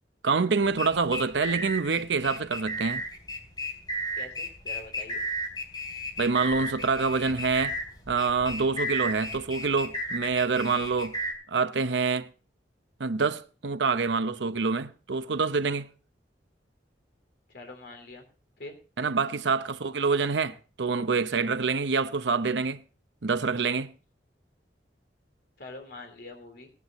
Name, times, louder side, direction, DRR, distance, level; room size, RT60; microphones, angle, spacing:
voice 1, 0.2-3.0 6.2-7.8 8.1-11.2 11.5-12.3 13.0-15.9 19.0-22.8 23.2-23.9, right 4 dB, 80° right, 0.7 m, -26 dB
sound 1, 0.6-11.3, right 1 dB, 25° left, 3.4 m, -34 dB
voice 2, 4.2-5.3 17.5-18.2 18.6-18.8 25.6-26.7, left 2 dB, 65° left, 3.4 m, -44 dB
17.5 x 11.0 x 3.0 m
head